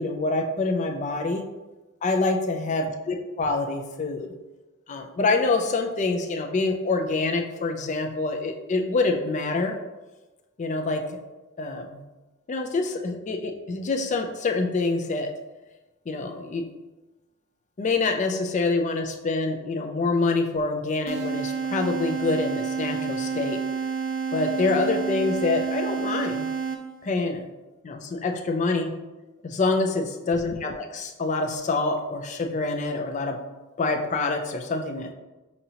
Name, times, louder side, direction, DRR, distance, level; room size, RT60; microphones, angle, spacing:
voice 1, 0.0-1.5 2.0-4.3 4.9-9.8 10.6-11.2 11.6-12.0 12.5-15.3 16.1-16.6 17.8-23.6 24.3-26.5 27.0-27.4 27.8-28.9 29.4-33.4 33.8-35.1, left 3 dB, 35° left, 4 dB, 0.4 m, -26 dB
sound 1, 21.1-27.1, right 5 dB, 40° right, 0.3 m, -29 dB
5.3 x 2.7 x 2.8 m, 1.1 s
head